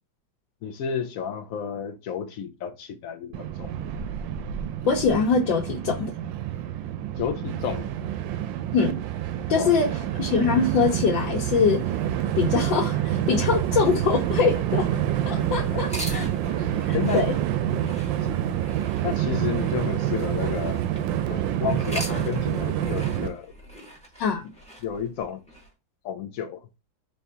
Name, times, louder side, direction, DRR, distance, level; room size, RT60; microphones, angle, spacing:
voice 1, 0.6-3.7 7.2-7.9 9.5-9.7 16.6-16.7 16.9-17.3 19.0-20.8 21.3-23.5 24.8-25.4 26.0-26.7, left 8 dB, 90° left, 0.7 m, -31 dB
Train, 3.3-23.3, right 11 dB, 75° right, 1.2 m, -27 dB
voice 2, 4.8-6.1 8.7-9.0 9.5-9.9 10.2-11.9 12.4-14.9 15.2-16.2 16.9-17.3 24.2-24.4, left 5 dB, 70° left, 1.5 m, -23 dB
sound 1, 12.1-17.5, left 2 dB, 25° left, 0.5 m, -45 dB
sound 2, 15.8-21.2 21.7-25.7, equal, 5° left, 1.0 m, -41 dB
4.3 x 3.4 x 2.7 m
omnidirectional pair, 2.1 m